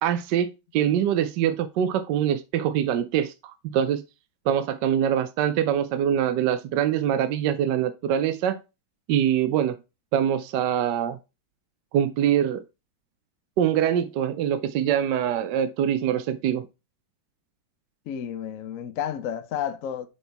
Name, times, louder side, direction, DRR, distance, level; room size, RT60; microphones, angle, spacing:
voice 1, 0.0-4.0 4.5-8.6 9.1-9.8 10.1-11.2 11.9-12.6 13.6-16.7, right 9 dB, 70° right, 1.1 m, -24 dB
voice 2, 18.1-20.1, left 9 dB, 65° left, 0.8 m, -31 dB
7.9 x 4.4 x 3.3 m
omnidirectional pair, 2.2 m